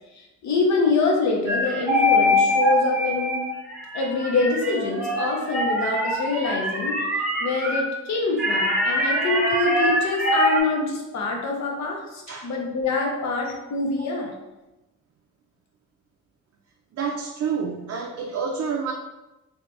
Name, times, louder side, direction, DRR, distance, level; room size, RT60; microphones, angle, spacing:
voice 1, 0.1-3.5 3.9-14.3, left 3 dB, 65° left, 0 dB, 0.8 m, -25 dB
sound 1, 1.5-7.8 8.4-10.6, equal, 5° right, 0.8 m, -23 dB
voice 2, 17.0-18.9, right 6 dB, 55° right, 1 dB, 0.4 m, -28 dB
2.8 x 2.5 x 3.3 m, 1.0 s
cardioid pair, 90°, 30 cm